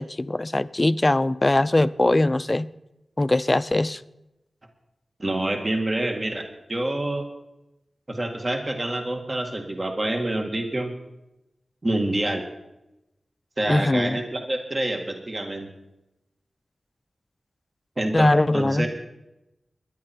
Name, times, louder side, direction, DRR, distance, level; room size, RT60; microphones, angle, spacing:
voice 1, 0.0-2.7 3.2-4.0 13.7-14.2 18.1-18.9, left 2 dB, 30° left, 0.6 m, -21 dB
voice 2, 5.2-6.4 6.7-7.3 8.1-10.9 11.8-12.4 13.6-15.7 18.0-18.9, right 1 dB, 40° right, 2.0 m, -27 dB
21.5 x 10.5 x 4.5 m
cardioid pair, 45°, 0 cm